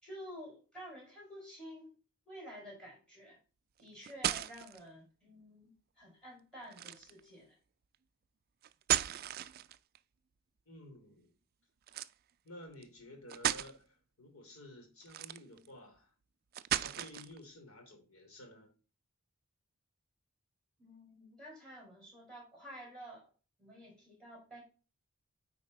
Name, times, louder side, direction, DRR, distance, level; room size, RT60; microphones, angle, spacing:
voice 1, 0.0-1.9 2.3-3.4 3.8-7.6 20.8-23.2 23.6-24.6, equal, 5° left, 4.4 m, -50 dB
sound 1, 3.8-4.8 6.7-7.2 8.6-10.0 11.9-12.1 12.8-12.9 13.3-13.7 15.0-15.7 16.5-17.4, right 12 dB, 45° right, 0.3 m, -35 dB
voice 2, 10.7-11.3 12.4-16.1 16.7-18.7, left 1 dB, 80° left, 3.0 m, -53 dB
9.5 x 4.2 x 4.1 m
head